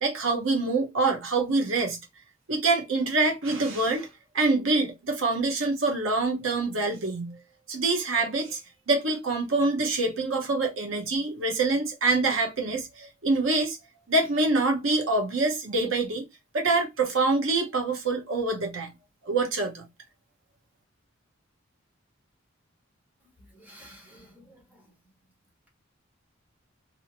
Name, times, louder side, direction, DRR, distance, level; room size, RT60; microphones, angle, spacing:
voice 1, 0.0-2.0 2.5-4.1 4.3-7.4 7.7-8.6 8.9-13.8 14.1-16.2 16.5-18.9 19.3-19.8, right 3 dB, 75° right, 0.9 m, -25 dB
voice 2, 23.5-24.6, equal, 10° right, 1.3 m, -51 dB
2.8 x 2.7 x 2.8 m
head